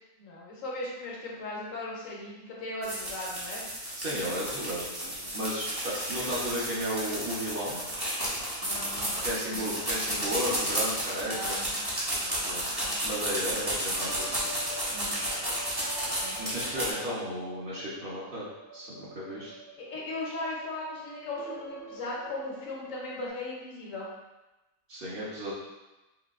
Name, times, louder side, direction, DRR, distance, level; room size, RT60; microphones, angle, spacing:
voice 1, 0.2-3.6 8.6-9.7 9.9-10.0 11.2-11.8 12.2-12.4 12.8-13.0 14.9-15.2 16.2-16.4 19.8-24.1, left 2 dB, 70° left, -3 dB, 1.1 m, -38 dB
sound 1, 2.8-16.9, right 1 dB, 25° right, 0.6 m, -32 dB
voice 2, 4.0-4.9 5.3-7.8 9.2-11.6 12.5-14.3 16.4-18.5 18.7-19.5 24.9-25.5, equal, 45° right, -8 dB, 0.9 m, -34 dB
sound 2, 11.5-23.3, right 1 dB, 70° right, 1.8 m, -47 dB
3.9 x 2.7 x 2.4 m, 1.0 s
omnidirectional pair, 1.5 m